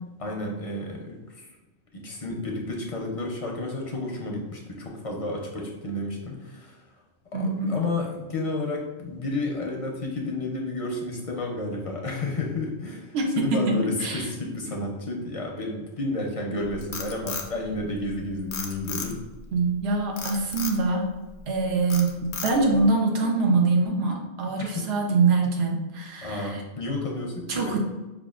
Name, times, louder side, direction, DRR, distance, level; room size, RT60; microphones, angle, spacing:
voice 1, 0.2-1.5 1.9-6.7 7.3-19.2 24.6-24.7 26.2-27.8, left 2 dB, 45° left, 0 dB, 0.5 m, -31 dB
voice 2, 7.3-7.7 13.1-13.3 14.0-14.3 19.5-21.0 21.5-26.6 27.5-27.8, right 3 dB, 75° right, 1 dB, 0.8 m, -24 dB
Frog, 16.6-18.1 18.5-19.4 20.2-20.8 21.3-21.6 21.9-22.8, left 6 dB, 85° left, 0.9 m, -34 dB
5.2 x 2.3 x 2.3 m, 1.1 s
omnidirectional pair, 1.1 m